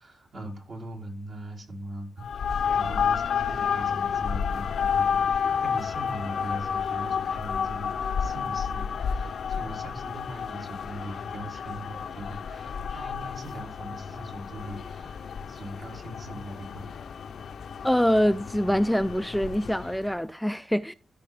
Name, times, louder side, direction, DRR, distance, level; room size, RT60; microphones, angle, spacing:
voice 1, 0.0-2.3 2.7-16.9, right 1 dB, 60° right, 2.8 m, -40 dB
sound 1, 2.2-20.1, left 7 dB, 75° left, 0.6 m, -30 dB
voice 2, 17.8-20.9, equal, ahead, 0.3 m, -24 dB
13.5 x 4.7 x 3.3 m
cardioid pair, 70°, 0 cm